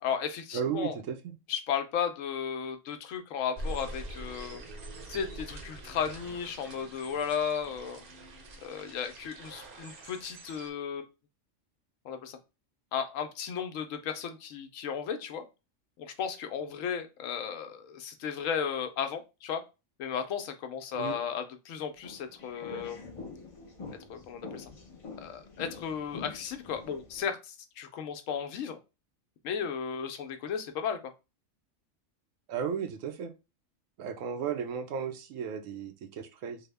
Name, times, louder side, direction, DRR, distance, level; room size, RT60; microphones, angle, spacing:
voice 1, 0.0-0.9 1.5-4.6 5.1-8.0 8.6-11.0 12.0-12.4 12.9-15.4 16.0-19.6 20.0-23.0 24.1-24.6 25.2-28.8 29.4-31.0, left 7 dB, 80° left, 7 dB, 1.0 m, -34 dB
voice 2, 0.5-1.2 20.9-21.2 32.5-33.3 34.0-36.6, right 7 dB, 90° right, 6 dB, 1.0 m, -34 dB
sound 1, 3.6-10.7, right 1 dB, 50° right, 0.8 m, -44 dB
sound 2, 22.0-27.2, left 3 dB, 40° left, 0.5 m, -45 dB
3.4 x 2.1 x 3.3 m, 0.27 s
omnidirectional pair, 1.3 m